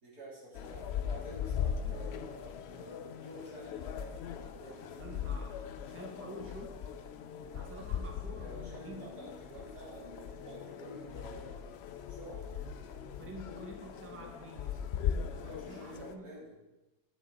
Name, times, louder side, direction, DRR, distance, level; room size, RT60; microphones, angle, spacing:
voice 1, 0.0-5.2 8.3-11.8 12.1-12.5 15.5-16.5, equal, 70° right, -7 dB, 3.6 m, -49 dB
sound 1, 0.5-16.1, left 8 dB, 85° left, 0.5 m, -39 dB
voice 2, 5.0-5.6 5.9-6.8 7.4-9.4 12.5-14.8 15.2-16.3, right 1 dB, 10° right, 2 dB, 0.8 m, -49 dB
9.5 x 7.3 x 4.1 m, 1.0 s
omnidirectional pair, 1.7 m